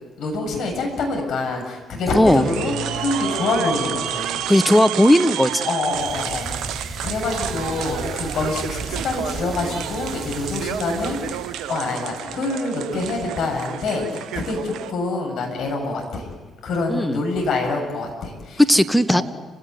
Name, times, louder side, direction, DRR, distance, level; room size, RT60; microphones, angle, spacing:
voice 1, 0.2-4.4 5.7-6.6 7.0-16.3 16.6-18.6 19.1-19.2, left 3 dB, 60° left, 1 dB, 7.6 m, -26 dB
voice 2, 2.1-2.4 4.5-5.6 16.9-17.2 18.7-19.2, equal, ahead, 11 dB, 1.6 m, -16 dB
sound 1, 2.3-14.9, right 10 dB, 65° right, 1.1 m, -30 dB
sound 2, 5.9-11.8, right 2 dB, 25° right, 4.0 m, -35 dB
29.5 x 17.5 x 9.7 m, 1.3 s
hypercardioid pair, 45°, 0 cm